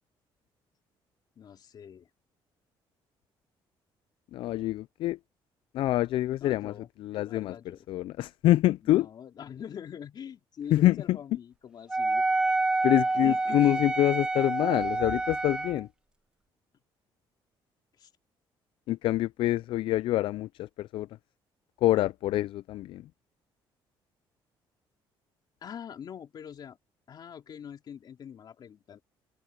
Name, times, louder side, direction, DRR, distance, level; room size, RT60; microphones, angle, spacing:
voice 1, 1.4-2.1 6.4-7.9 8.8-12.4 13.1-13.8 18.0-18.1 25.6-26.8 27.1-29.0, left 8 dB, 50° left, 3.6 m, -44 dB
voice 2, 4.3-5.2 5.7-6.7 7.0-7.6 7.9-9.1 10.7-11.2 12.8-15.9 18.9-21.1 21.8-23.0, left 14 dB, 70° left, 0.4 m, -26 dB
Wind instrument woodwind instrument, 11.9-15.8, right 2 dB, 10° right, 0.3 m, -28 dB
open air
cardioid pair, 120°, 9 cm